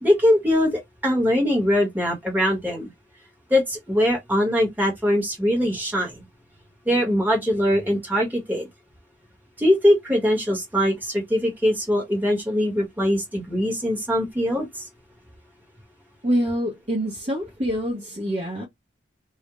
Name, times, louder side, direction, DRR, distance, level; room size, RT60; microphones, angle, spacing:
voice 1, 0.0-2.9 3.5-6.1 6.9-8.7 9.6-14.8, equal, 10° right, 0.9 m, -22 dB
voice 2, 16.2-18.7, equal, 35° right, 0.7 m, -25 dB
2.4 x 2.0 x 2.9 m
head